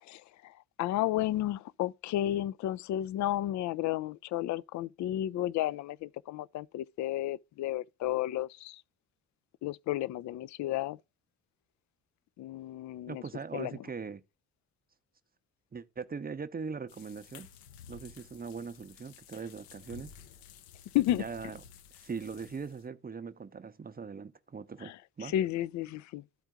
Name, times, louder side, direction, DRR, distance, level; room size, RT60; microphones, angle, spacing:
voice 1, 0.0-8.8 9.6-11.0 12.4-13.2 13.5-13.7 20.9-21.2 24.8-26.2, left 13 dB, 45° left, 0.4 m, -32 dB
voice 2, 13.1-14.2 15.7-17.5 17.9-20.1 21.1-21.6 22.0-24.9 25.2-25.3, right 5 dB, 20° right, 0.7 m, -40 dB
sound 1, 16.9-22.9, left 7 dB, 65° left, 0.8 m, -53 dB
12.5 x 4.4 x 3.6 m
figure-of-eight pair, 40°, 44 cm